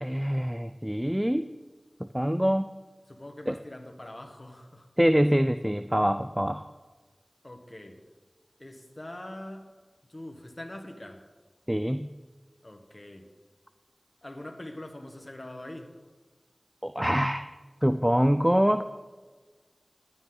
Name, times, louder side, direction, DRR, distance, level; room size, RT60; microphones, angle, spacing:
voice 1, 0.0-1.5 2.0-2.7 3.5-3.6 5.0-6.6 11.7-12.1 16.8-17.4 17.8-18.9, equal, 10° right, 10 dB, 0.3 m, -25 dB
voice 2, 3.1-4.9 7.4-8.0 8.6-9.7 10.1-11.2 12.6-13.3 14.2-15.9, left 1 dB, 40° left, 4 dB, 1.4 m, -43 dB
11.5 x 9.4 x 3.8 m, 1.3 s
wide cardioid pair, 45°, 0 cm